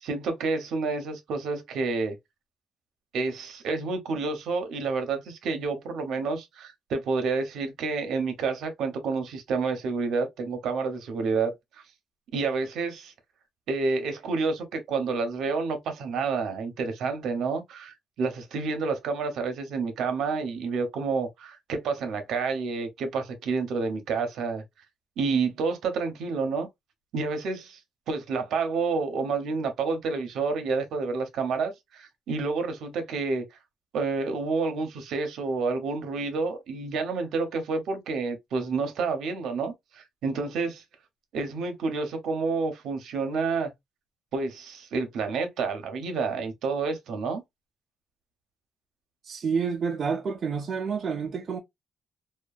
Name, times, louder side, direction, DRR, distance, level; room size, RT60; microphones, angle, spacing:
voice 1, 0.0-2.2 3.1-11.5 12.3-13.1 13.7-24.6 25.2-26.7 27.1-27.8 28.1-33.4 33.9-40.8 41.3-43.7 44.3-47.4, right 4 dB, 70° right, 0.7 m, -29 dB
voice 2, 49.2-51.6, right 5 dB, 35° right, 0.4 m, -29 dB
2.8 x 2.2 x 2.3 m
cardioid pair, 180°, 0 cm